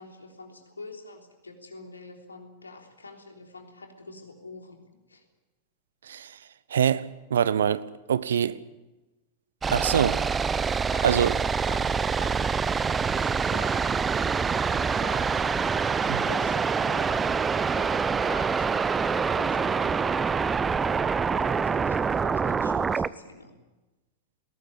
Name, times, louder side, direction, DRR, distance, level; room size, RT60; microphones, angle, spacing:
voice 1, 0.0-5.2 10.9-11.3 11.7-12.5 13.1-14.1 14.7-17.3 17.7-20.5 20.8-23.6, left 3 dB, 80° left, 3.5 m, -46 dB
voice 2, 6.0-6.4 6.7-8.6 9.7-10.2 11.0-11.3 16.1-16.2, right 8 dB, 65° right, 0.9 m, -24 dB
sound 1, 9.6-23.1, right 5 dB, 15° right, 0.7 m, -26 dB
21.5 x 18.5 x 8.6 m
figure-of-eight pair, 90°, 0 cm